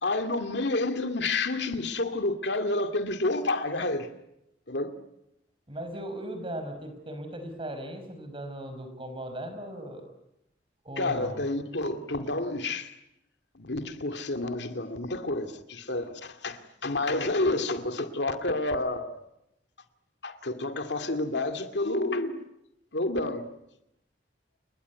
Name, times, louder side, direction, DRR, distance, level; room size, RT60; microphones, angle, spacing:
voice 1, 0.0-4.1 4.7-5.0 11.0-12.9 13.5-19.2 20.2-22.4 22.9-23.5, left 2 dB, 70° left, 2.4 m, -29 dB
voice 2, 5.7-10.1 10.9-11.4, right 1 dB, 30° right, 5.2 m, -38 dB
29.5 x 21.0 x 9.4 m
head